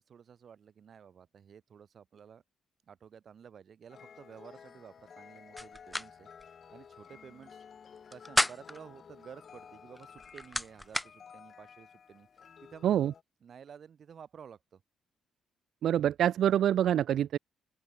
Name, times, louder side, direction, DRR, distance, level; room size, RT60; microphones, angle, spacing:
voice 1, 0.0-2.4 2.9-6.3 6.7-7.6 8.1-12.3 12.6-12.9 13.4-14.8, right 7 dB, 55° right, 7.3 m, -52 dB
sound 1, 3.9-13.2, left 7 dB, 50° left, 5.1 m, -53 dB
sound 2, 5.6-6.1 6.4-6.5 8.0-8.8 9.9-11.1, left 1 dB, 5° left, 0.9 m, -32 dB
voice 2, 15.8-17.4, right 10 dB, 70° right, 1.1 m, -26 dB
open air
cardioid pair, 90°, 0 cm